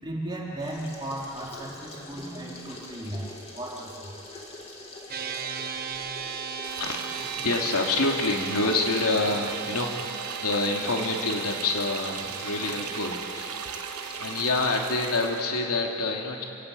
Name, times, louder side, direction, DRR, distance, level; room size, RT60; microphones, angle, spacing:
voice 1, 0.0-4.1, right 1 dB, 20° right, -4 dB, 4.1 m, -36 dB
sound 1, 0.6-15.6, left 2 dB, 25° left, 3.1 m, -44 dB
sound 2, 5.1-15.9, right 8 dB, 40° right, 1.2 m, -37 dB
sound 3, 6.6-15.4, right 7 dB, 85° right, 1.4 m, -38 dB
voice 2, 6.7-13.5 14.2-16.4, left 3 dB, 80° left, 1 dB, 2.9 m, -27 dB
28.5 x 17.0 x 8.5 m, 2.6 s
head